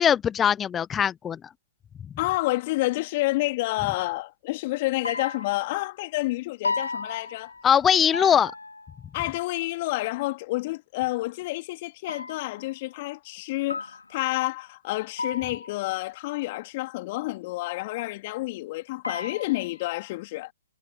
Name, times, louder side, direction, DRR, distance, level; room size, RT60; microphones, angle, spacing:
voice 1, 0.0-1.4 7.6-8.5, left 8 dB, 15° left, 0.7 m, -21 dB
voice 2, 2.2-7.5 9.1-20.5, left 20 dB, 35° left, 3.2 m, -29 dB
sound 1, 5.0-5.9 6.6-7.8 8.1-9.2 12.1-12.7 13.7-14.4 15.2-15.9 19.0-19.9, left 3 dB, 80° left, 3.6 m, -34 dB
figure-of-eight pair, 130°, 0 cm